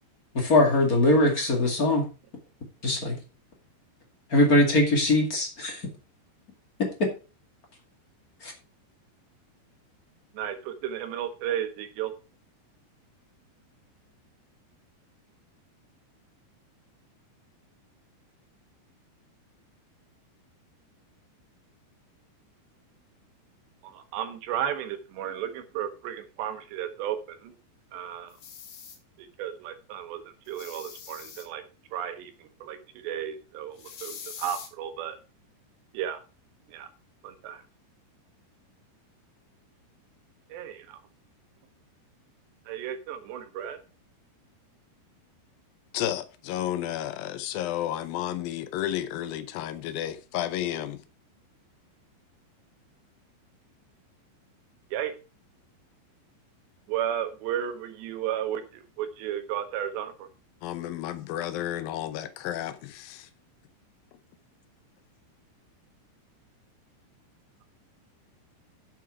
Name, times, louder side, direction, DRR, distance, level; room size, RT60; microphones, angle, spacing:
voice 1, 0.3-2.1 2.8-3.2 4.3-5.8 6.8-7.1 8.4-8.5, left 2 dB, 35° left, 1.6 m, -22 dB
voice 2, 10.3-12.1 23.8-27.6 27.9-28.3 29.2-31.6 31.9-34.1 34.4-35.2 35.9-36.2 36.7-36.9 37.2-37.6 40.5-41.0 42.7-43.8 54.9-55.1 56.9-60.3, right 10 dB, 75° right, 3.1 m, -34 dB
sound 1, 28.3-29.0 30.5-31.5 33.8-34.7, left 6 dB, 65° left, 4.2 m, -43 dB
voice 3, 45.9-51.0 60.6-63.3, left 12 dB, 85° left, 2.0 m, -32 dB
9.2 x 7.7 x 4.7 m
omnidirectional pair, 5.3 m